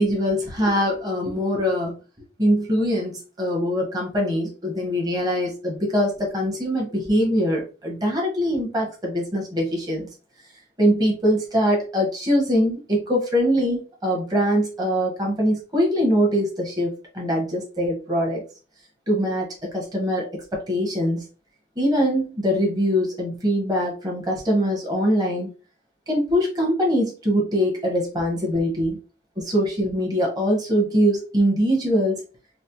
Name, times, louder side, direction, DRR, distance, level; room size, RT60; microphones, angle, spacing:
voice 1, 0.0-2.0 2.4-10.1 10.8-18.4 19.1-21.2 21.8-25.5 26.1-29.0 29.4-32.2, equal, 20° right, -1 dB, 1.0 m, -23 dB
4.0 x 2.0 x 2.9 m, 0.33 s
head